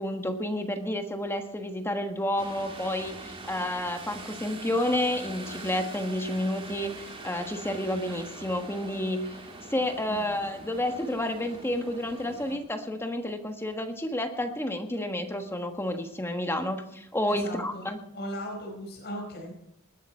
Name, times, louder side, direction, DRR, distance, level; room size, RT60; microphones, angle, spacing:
voice 1, 0.0-9.3 9.7-18.0, left 1 dB, 10° left, 5 dB, 1.3 m, -30 dB
sound 1, 2.4-12.6, right 2 dB, 25° right, 2.8 m, -43 dB
voice 2, 17.3-19.5, equal, 50° left, -1 dB, 4.9 m, -38 dB
20.0 x 12.0 x 4.5 m, 0.77 s
head